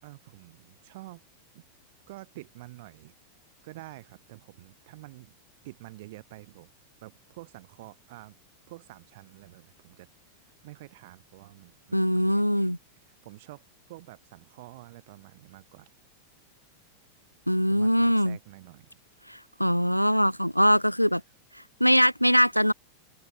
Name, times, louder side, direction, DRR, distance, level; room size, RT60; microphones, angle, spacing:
voice 1, 0.0-1.2 1.5-1.6 2.1-3.1 3.6-5.4 5.6-6.7 7.0-8.4 8.7-15.9 17.7-19.0, right 19 dB, 50° right, 5.3 m, -48 dB
voice 2, 11.9-12.8 17.5-18.4 19.3-21.2 21.8-22.7, equal, 90° left, 0.6 m, -22 dB
open air
figure-of-eight pair, 90°, 0 cm